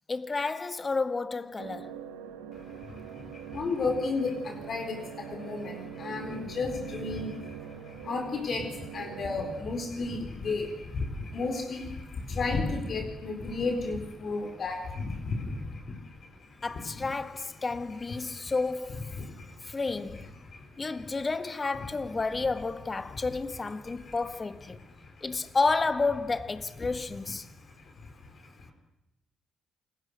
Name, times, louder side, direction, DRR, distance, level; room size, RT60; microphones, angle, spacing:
voice 1, 0.1-2.0 16.6-19.1 19.7-20.3 20.8-24.8 25.2-27.5, left 3 dB, 30° left, 1.7 m, -31 dB
sound 1, 1.6-9.5, right 9 dB, 80° right, 2.5 m, -43 dB
voice 2, 2.5-17.1 18.1-18.5 19.1-19.7 20.1-21.1 23.1-23.3 23.8-24.2 24.8-25.3 27.4-28.7, left 3 dB, 50° left, 4.3 m, -34 dB
28.5 x 20.0 x 6.6 m
hypercardioid pair, 45°, 0 cm